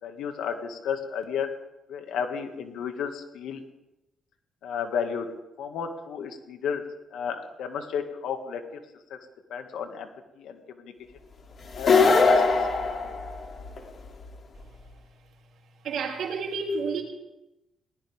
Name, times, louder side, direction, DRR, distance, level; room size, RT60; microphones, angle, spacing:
voice 1, 0.0-1.5 1.9-3.6 4.6-5.3 5.6-6.8 7.1-8.6 9.1-9.2 9.5-10.1 10.4-10.9 11.7-12.4 12.8-12.9, left 7 dB, 80° left, 6 dB, 2.0 m, -32 dB
sound 1, 11.7-13.8, left 4 dB, 50° left, 2.8 m, -21 dB
voice 2, 15.8-17.0, right 4 dB, 75° right, 1 dB, 3.2 m, -30 dB
20.0 x 19.0 x 3.6 m, 0.97 s
cardioid pair, 90°, 0 cm